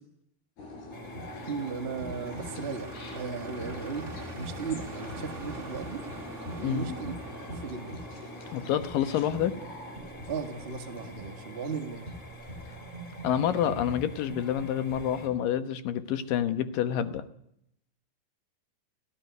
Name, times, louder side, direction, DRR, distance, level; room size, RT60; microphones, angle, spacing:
sound 1, 0.6-13.4, left 2 dB, 85° left, 5.6 m, -45 dB
sound 2, 0.9-15.3, right 1 dB, 10° left, 4.9 m, -43 dB
sound 3, 1.4-8.7, right 3 dB, 30° right, 1.5 m, -46 dB
voice 1, 1.4-6.0 6.6-7.1 7.4-8.0 10.3-12.1, right 5 dB, 65° right, 7 dB, 0.6 m, -36 dB
voice 2, 6.6-7.0 8.5-9.6 13.2-17.2, left 10 dB, 70° left, 12 dB, 2.6 m, -28 dB
17.5 x 16.0 x 9.5 m, 0.72 s
omnidirectional pair, 4.5 m